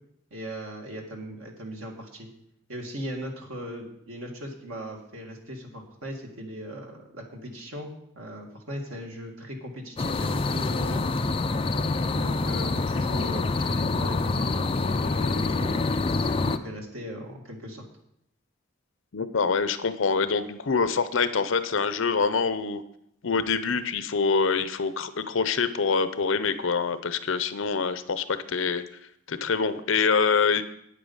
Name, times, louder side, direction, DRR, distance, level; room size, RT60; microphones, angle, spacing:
voice 1, 0.3-2.3 2.7-7.9 8.2-11.0 12.1-17.9, equal, 80° right, 1 dB, 2.1 m, -38 dB
sound 1, 10.0-16.6, left 3 dB, 25° left, 0.4 m, -26 dB
voice 2, 19.1-22.8 23.2-28.8 29.3-30.6, left 5 dB, 70° left, 12 dB, 0.7 m, -25 dB
9.4 x 8.5 x 5.5 m, 0.77 s
head